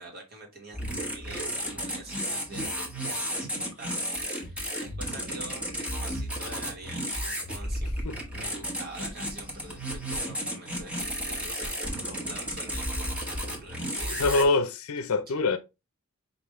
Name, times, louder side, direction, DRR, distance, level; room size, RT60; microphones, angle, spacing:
voice 1, 0.0-4.0 4.3-7.9 8.3-14.6 15.1-15.4, right 2 dB, 45° right, 1.5 m, -46 dB
sound 1, 0.7-14.4, equal, 5° right, 1.0 m, -33 dB
voice 2, 14.0-15.6, left 3 dB, 70° left, 0.5 m, -25 dB
5.1 x 2.6 x 3.1 m
head